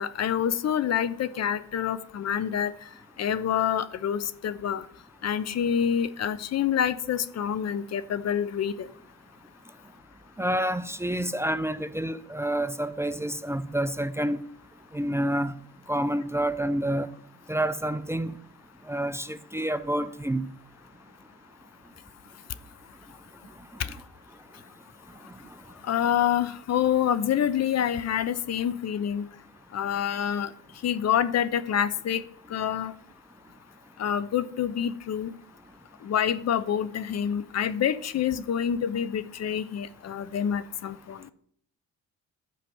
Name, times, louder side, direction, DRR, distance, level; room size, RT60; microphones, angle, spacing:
voice 1, 0.0-2.7 3.2-4.8 5.2-8.9 25.9-29.3 29.7-30.5 30.8-32.2 32.5-32.9 34.0-35.3 36.0-41.2, left 9 dB, 60° left, 0.9 m, -27 dB
voice 2, 10.4-14.4 14.9-15.5 15.9-17.1 17.5-18.3 18.9-20.5, right 1 dB, 10° right, 0.6 m, -28 dB
11.5 x 5.0 x 7.8 m
cardioid pair, 90°, 30 cm